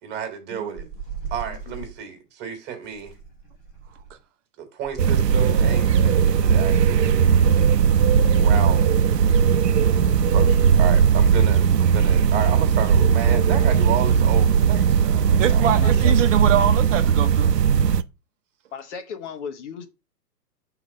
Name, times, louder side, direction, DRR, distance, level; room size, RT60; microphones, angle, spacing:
voice 1, 0.0-0.8 1.3-3.1 4.6-7.1 8.4-8.9 10.3-16.0, right 8 dB, 20° right, 1.6 m, -32 dB
sound 1, 0.8-2.0 2.9-4.2 4.8-5.5 6.2-7.9, right 6 dB, 10° left, 0.4 m, -37 dB
voice 2, 1.4-1.9 15.8-16.1 18.7-19.9, left 6 dB, 45° left, 1.1 m, -36 dB
sound 2, 5.0-18.0, right 7 dB, 80° right, 0.7 m, -18 dB
voice 3, 15.4-17.5, right 10 dB, 50° right, 0.8 m, -24 dB
6.0 x 4.0 x 5.3 m
hypercardioid pair, 130°, 48 cm